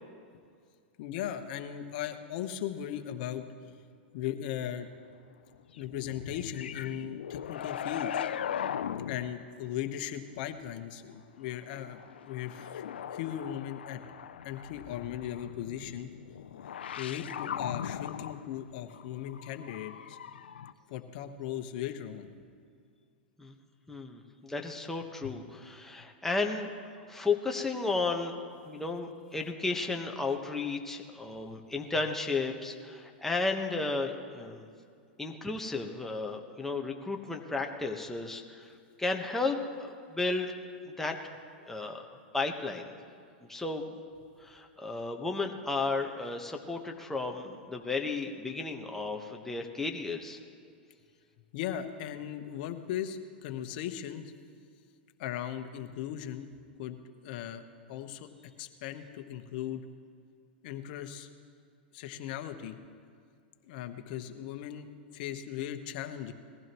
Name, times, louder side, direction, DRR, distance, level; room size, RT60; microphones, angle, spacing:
voice 1, 1.0-3.4 4.1-4.9 5.8-8.2 9.1-14.0 14.4-16.1 17.0-20.2 20.9-22.3 25.2-25.3 51.5-54.3 55.2-56.5 56.8-58.3 58.6-59.8 60.6-61.3 61.9-62.8 63.6-66.3, left 10 dB, 60° left, 7 dB, 1.1 m, -38 dB
sound 1, 5.6-9.5 11.6-20.7, left 9 dB, 85° left, 0.5 m, -39 dB
voice 2, 23.9-26.7 27.1-28.4 28.6-34.7 35.2-38.7 39.0-40.5 40.9-41.3 41.7-42.0 42.3-42.9 43.5-43.9 44.4-50.4, left 3 dB, 5° left, 1 dB, 1.2 m, -33 dB
20.5 x 15.0 x 3.1 m, 2.2 s
hypercardioid pair, 115°, 6 cm